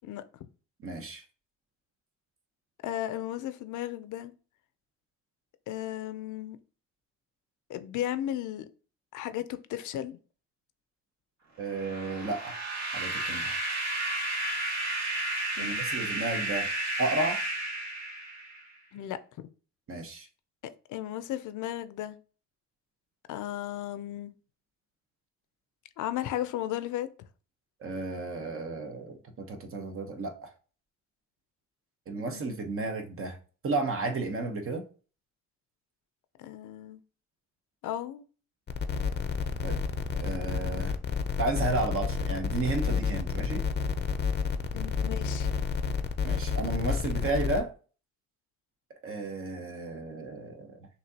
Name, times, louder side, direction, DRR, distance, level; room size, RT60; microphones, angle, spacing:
voice 1, 0.8-1.2 11.6-12.6 12.9-13.6 15.6-16.7 17.0-17.4 19.9-20.3 27.8-30.5 32.1-33.4 33.6-34.8 39.6-39.8 40.2-40.9 41.4-43.6 46.2-47.7 49.0-50.9, right 2 dB, 45° right, 1.0 m, -33 dB
voice 2, 2.8-4.3 5.7-6.6 7.7-8.6 9.1-10.2 15.6-15.8 18.9-19.5 20.9-22.2 23.3-24.3 26.0-27.1 32.2-32.5 36.4-37.0 37.8-38.2 44.7-45.5, left 12 dB, 75° left, 0.6 m, -35 dB
sound 1, 11.7-18.7, right 2 dB, 65° right, 1.6 m, -32 dB
sound 2, 38.7-47.6, left 6 dB, 35° left, 0.6 m, -30 dB
6.0 x 2.8 x 2.8 m
cardioid pair, 90°, 30 cm